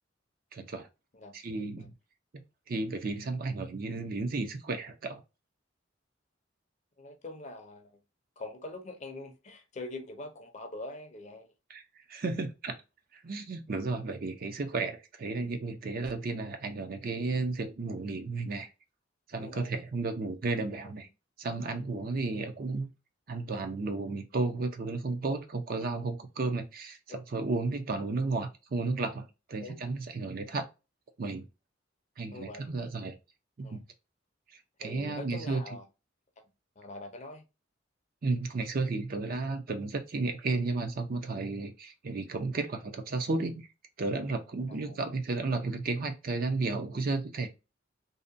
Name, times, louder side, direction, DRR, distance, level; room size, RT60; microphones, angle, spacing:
voice 1, 0.5-0.9 1.3-1.9 2.7-5.2 11.7-11.8 12.1-12.7 13.2-18.7 19.3-21.1 21.4-22.9 23.3-29.2 29.5-30.7 31.2-31.4 32.2-33.2 33.6-33.8 34.8-35.6 38.2-43.7 44.0-47.5, right 3 dB, 50° right, 0.5 m, -33 dB
voice 2, 7.0-8.0 8.4-11.5 19.4-19.7 21.0-21.1 26.0-26.1 27.1-27.2 29.6-29.8 32.3-32.8 33.6-33.8 34.8-35.9 36.8-37.4 44.7-45.1, left 2 dB, 40° left, 0.5 m, -44 dB
2.7 x 2.1 x 2.5 m
head